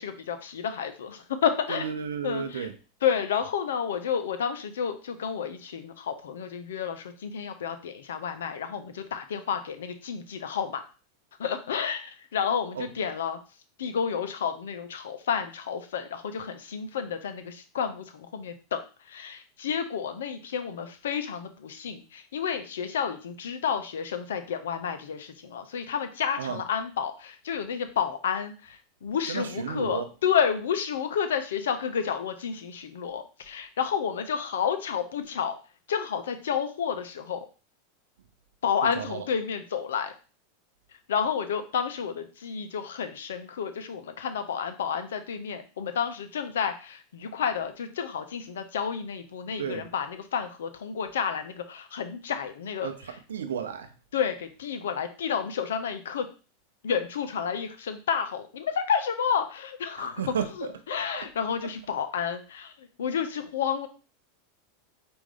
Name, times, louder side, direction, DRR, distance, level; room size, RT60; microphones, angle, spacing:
voice 1, 0.0-1.8 2.2-2.7 3.0-10.8 11.4-12.0 12.3-13.4 13.8-18.8 19.1-35.6 35.9-37.5 38.6-40.1 41.1-52.9 54.1-56.3 56.8-60.2 60.9-63.9, left 7 dB, 75° left, 0.6 m, -30 dB
voice 2, 1.7-2.8 12.7-12.9 26.4-26.7 29.3-30.1 38.8-39.3 49.6-49.9 52.8-53.9 59.9-61.3 61.6-61.7, right 7 dB, 80° right, 0.6 m, -34 dB
4.7 x 2.6 x 3.6 m
hypercardioid pair, 95°, 0 cm